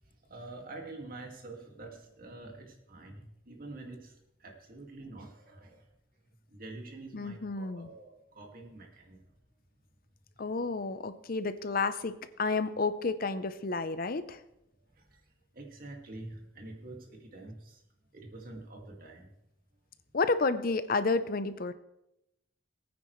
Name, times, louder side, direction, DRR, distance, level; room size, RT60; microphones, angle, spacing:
voice 1, 0.3-4.1 4.4-5.8 6.5-9.2 15.1-15.2 15.5-17.8 18.1-19.3, right 2 dB, 50° right, 2 dB, 2.2 m, -46 dB
voice 2, 7.1-7.9 10.4-12.1 12.4-14.4 20.1-21.7, left 3 dB, 50° left, 12 dB, 0.7 m, -30 dB
19.0 x 9.5 x 3.2 m, 0.85 s
head